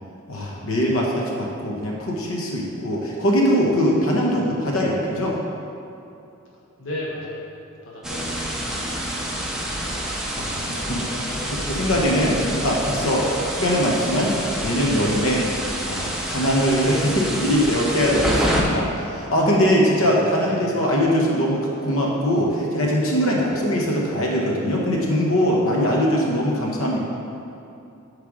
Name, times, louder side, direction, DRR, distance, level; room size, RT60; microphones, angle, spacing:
voice 1, 0.3-5.4 10.4-11.0 11.5-13.3 13.6-15.5 15.9-27.0, equal, 75° left, -2 dB, 1.1 m, -21 dB
voice 2, 4.0-4.6 6.8-7.4 7.8-8.6 10.5-11.8 12.3-12.6 13.0-13.3 19.4-21.0, left 1 dB, 60° left, -5 dB, 1.0 m, -36 dB
sound 1, 8.0-18.6, equal, ahead, 0.7 m, -28 dB
8.4 x 3.4 x 6.2 m, 2.7 s
head